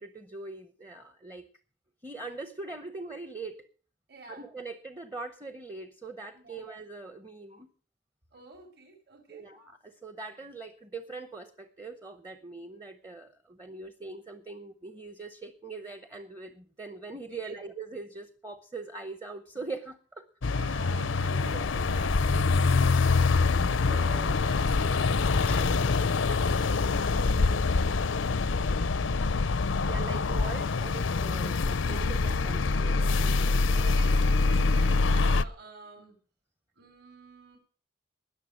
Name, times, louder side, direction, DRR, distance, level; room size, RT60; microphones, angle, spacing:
voice 1, 0.0-1.4 2.0-3.7 4.3-7.7 9.3-20.2 20.6-20.7 21.3-22.6 23.9-24.4 25.5-25.9 29.8-33.6, right 3 dB, 15° right, 9 dB, 0.8 m, -42 dB
voice 2, 4.1-4.5 6.3-6.7 8.3-9.5 17.2-17.6 20.5-21.8 23.3-28.9 33.7-36.2 36.8-37.6, right 2 dB, 50° right, 5 dB, 3.2 m, -49 dB
sound 1, 20.4-35.4, left 3 dB, 80° left, 0.6 m, -25 dB
20.0 x 6.8 x 6.4 m, 0.41 s
head